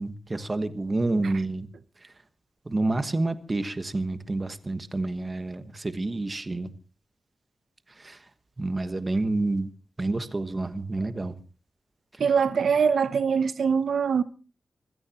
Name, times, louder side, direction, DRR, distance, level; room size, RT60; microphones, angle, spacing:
voice 1, 0.0-1.7 2.0-2.1 2.6-6.7 8.0-8.2 8.6-9.7 10.0-11.3, right 2 dB, 25° right, 1.3 m, -29 dB
voice 2, 12.2-14.2, right 6 dB, 85° right, 0.7 m, -23 dB
25.0 x 16.5 x 2.9 m
wide cardioid pair, 125°, 0 cm